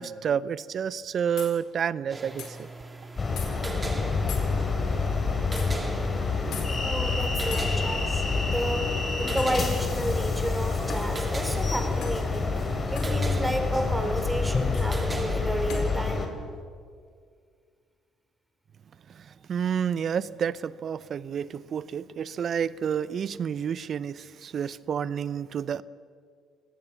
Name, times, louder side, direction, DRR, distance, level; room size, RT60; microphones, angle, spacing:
voice 1, 0.0-2.7 19.1-25.8, right 8 dB, 50° right, 19 dB, 0.7 m, -30 dB
sound 1, 1.4-1.5 2.4-2.5 3.4-3.5 4.3-4.5 5.6-5.7 6.5-6.7 7.5-7.7 9.4-9.6 10.9-11.1 12.0-12.2 13.0-13.1 14.7-14.9 15.7-15.9, left 6 dB, 65° left, 4.4 m, -39 dB
sound 2, 2.1-15.7, right 2 dB, 20° right, 2.5 m, -39 dB
sound 3, 3.2-16.3, left 4 dB, 35° left, 3.8 m, -27 dB
voice 2, 6.4-8.9 9.2-12.5 12.9-16.3, equal, 5° right, 6 dB, 4.4 m, -32 dB
24.0 x 17.5 x 7.2 m, 2.1 s
hypercardioid pair, 55°, 0 cm